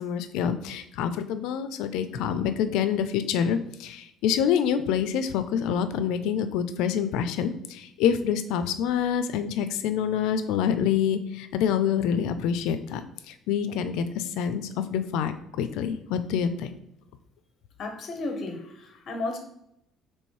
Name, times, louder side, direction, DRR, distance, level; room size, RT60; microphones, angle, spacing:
voice 1, 0.0-16.7, left 8 dB, 85° left, 10 dB, 0.4 m, -27 dB
voice 2, 17.8-19.4, left 2 dB, 45° left, 5 dB, 0.8 m, -33 dB
3.1 x 3.1 x 4.4 m, 0.77 s
cardioid pair, 140°, 0 cm